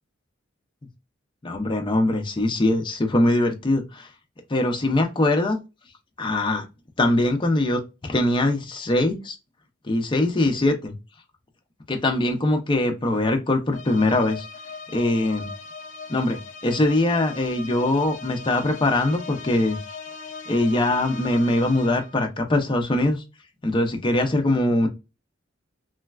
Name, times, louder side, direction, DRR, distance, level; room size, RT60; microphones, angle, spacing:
voice 1, 1.4-4.1 4.5-5.6 6.2-6.7 7.0-9.4 9.8-10.9 11.9-14.5 14.9-15.5 16.1-19.8 20.5-23.2 23.6-24.9, left 2 dB, 25° left, 0.5 m, -22 dB
sound 1, 13.7-22.2, left 4 dB, 60° left, 0.7 m, -39 dB
3.1 x 2.2 x 2.2 m
head